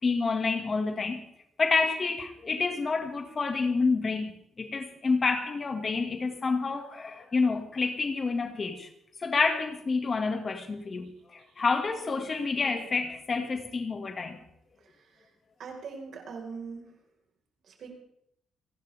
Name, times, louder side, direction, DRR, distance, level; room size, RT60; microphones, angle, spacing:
voice 1, 0.0-1.2 1.6-8.9 9.2-14.4, left 4 dB, 35° left, 2.1 m, -28 dB
voice 2, 15.6-16.9 17.7-17.9, right 5 dB, 65° right, 4.9 m, -40 dB
29.0 x 11.5 x 3.6 m
cardioid pair, 90°, 0 cm